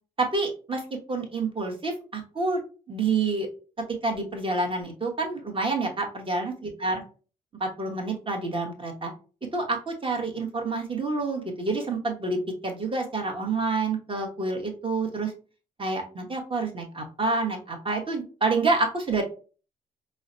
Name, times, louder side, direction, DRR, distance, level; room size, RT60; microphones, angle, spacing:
voice 1, 0.2-0.8 1.1-2.6 2.9-3.5 4.0-7.0 7.6-9.1 9.5-15.3 15.8-19.2, right 3 dB, 30° right, 2 dB, 1.2 m, -28 dB
5.3 x 2.1 x 2.6 m, 0.37 s
hypercardioid pair, 40°, 18 cm